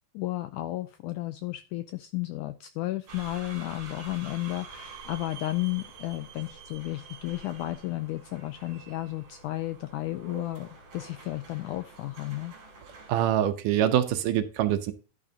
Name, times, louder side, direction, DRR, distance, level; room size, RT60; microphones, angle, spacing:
voice 1, 0.1-12.5, left 17 dB, 85° left, 11 dB, 1.8 m, -33 dB
sound 1, 3.1-13.2, right 4 dB, 45° right, 3.3 m, -47 dB
voice 2, 13.1-14.9, right 11 dB, 75° right, 9 dB, 2.2 m, -24 dB
11.5 x 8.7 x 2.8 m, 0.34 s
omnidirectional pair, 4.2 m